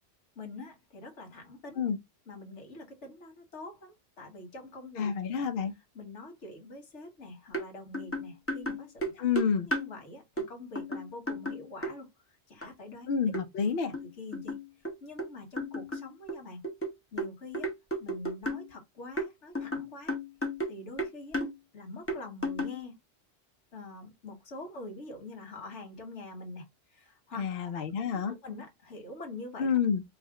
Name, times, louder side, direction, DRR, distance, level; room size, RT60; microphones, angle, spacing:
voice 1, 0.3-1.8 2.3-5.4 5.9-9.2 9.6-12.1 12.5-13.1 14.2-14.6 15.0-16.6 17.1-17.7 18.0-20.2 20.7-21.4 21.7-23.0 23.7-26.6 26.9-27.8 28.1-29.7, left 2 dB, 85° left, 1.6 m, -45 dB
voice 2, 5.0-5.7 9.2-9.7 13.1-13.9 27.4-28.3 29.6-30.0, left 6 dB, 65° left, 0.8 m, -29 dB
sound 1, 7.5-7.7 7.9-9.9 10.4-10.5 10.7-11.9 12.6-12.7 13.3-13.5 13.9-15.3 15.6-18.7 19.2-20.7 21.0-21.5 22.1-22.8, equal, 15° left, 0.7 m, -34 dB
4.8 x 2.1 x 3.5 m
omnidirectional pair, 1.2 m